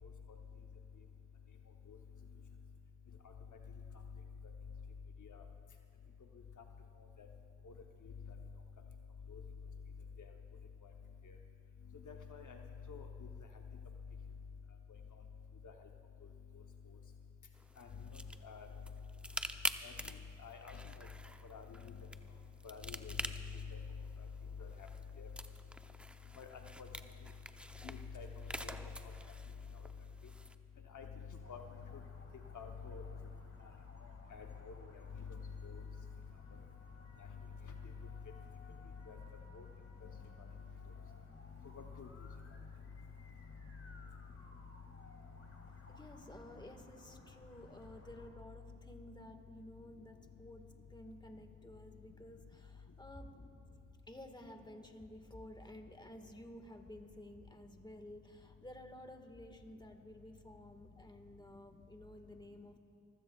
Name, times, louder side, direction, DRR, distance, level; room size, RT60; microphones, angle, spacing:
voice 1, 12.1-12.6 12.9-13.1 15.6-15.7 17.8-18.7 19.8-19.9 20.4-21.1 21.5-22.0 22.6-23.3 23.7-23.8 24.6-24.9 25.2-25.3 26.4-26.5 26.8-26.9 27.8-28.3 28.6-28.8 30.9-31.1 31.5-31.6 32.5-33.0 34.0-35.8 39.1-39.2 39.5-39.6 40.4-40.5 41.8-42.1, left 6 dB, 65° left, 3 dB, 0.9 m, -48 dB
sound 1, 17.5-30.6, right 1 dB, 5° right, 0.6 m, -47 dB
sound 2, 31.4-48.3, left 2 dB, 45° left, 2.1 m, -59 dB
voice 2, 45.9-53.3 54.1-62.8, left 1 dB, 15° left, 5 dB, 1.6 m, -53 dB
24.0 x 15.5 x 2.3 m, 2.5 s
cardioid pair, 40°, 33 cm